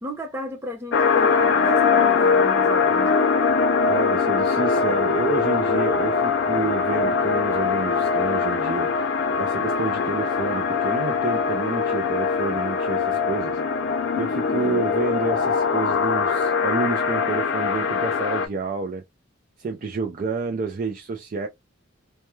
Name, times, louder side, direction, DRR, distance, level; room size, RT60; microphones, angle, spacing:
voice 1, 0.0-3.3 4.8-4.9 14.5-14.9, equal, 15° right, 0.7 m, -34 dB
sound 1, 0.9-18.5, left 5 dB, 60° left, 0.3 m, -22 dB
voice 2, 3.9-9.1 9.4-13.6 14.1-19.0 19.6-21.5, right 4 dB, 40° right, 0.3 m, -29 dB
2.2 x 2.1 x 3.0 m
head